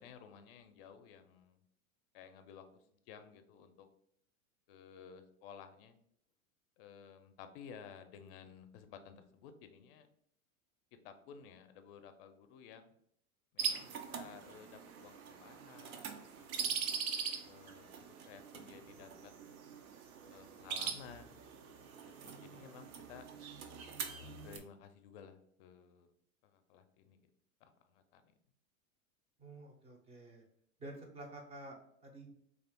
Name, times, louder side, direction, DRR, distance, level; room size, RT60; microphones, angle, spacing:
voice 1, 0.0-1.6 2.1-2.6 3.1-3.9 4.7-6.0 6.8-10.1 10.9-12.9 13.5-16.5 17.3-19.3 20.3-21.4 22.2-23.2 24.2-26.1 26.4-27.2 27.6-28.2, left 7 dB, 45° left, 8 dB, 0.5 m, -55 dB
sound 1, 13.6-24.6, right 6 dB, 75° right, 0.6 m, -42 dB
voice 2, 29.4-30.4 30.8-32.3, right 1 dB, 15° right, 1 dB, 0.4 m, -50 dB
2.4 x 2.4 x 3.5 m, 0.68 s
hypercardioid pair, 100°, 42 cm